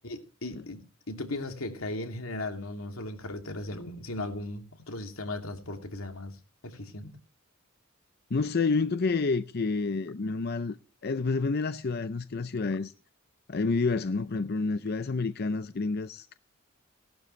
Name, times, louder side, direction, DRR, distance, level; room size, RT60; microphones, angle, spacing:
voice 1, 0.0-0.8 1.1-6.4 6.6-7.1, left 2 dB, 85° left, 2.7 m, -37 dB
voice 2, 8.3-10.8 11.0-12.9 13.5-16.3, left 4 dB, 50° left, 0.5 m, -29 dB
18.0 x 12.0 x 3.2 m
head